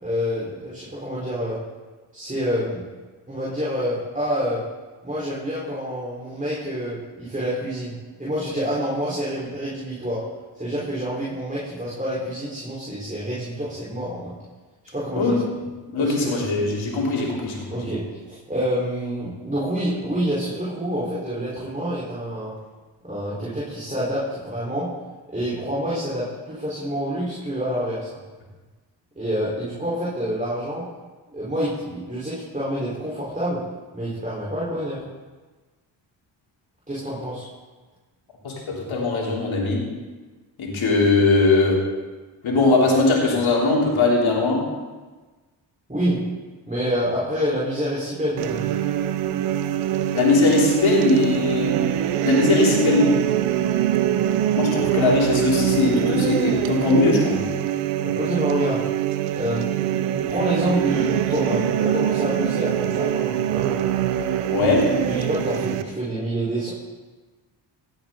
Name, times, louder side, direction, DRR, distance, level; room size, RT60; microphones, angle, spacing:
voice 1, 0.0-1.6 2.1-2.8 3.3-4.6 5.0-10.2 10.5-14.3 14.9-15.4 16.0-16.4 17.7-22.5 23.0-24.9 25.3-28.1 29.2-30.8 31.3-33.6 33.9-35.0 36.9-37.5 45.9-46.2 46.7-48.7 58.0-58.8 59.3-59.8 60.3-63.8 65.1-66.7, equal, 15° right, -8 dB, 4.4 m, -27 dB
voice 2, 15.9-17.9 38.4-39.8 40.6-41.8 42.4-44.6 50.1-51.7 52.2-53.1 54.6-57.4 64.5-64.8, left 3 dB, 65° left, -3 dB, 3.6 m, -20 dB
sound 1, 48.4-65.8, right 11 dB, 85° right, 0.7 m, -23 dB
16.5 x 9.0 x 4.0 m, 1.3 s
supercardioid pair, 50°, 50 cm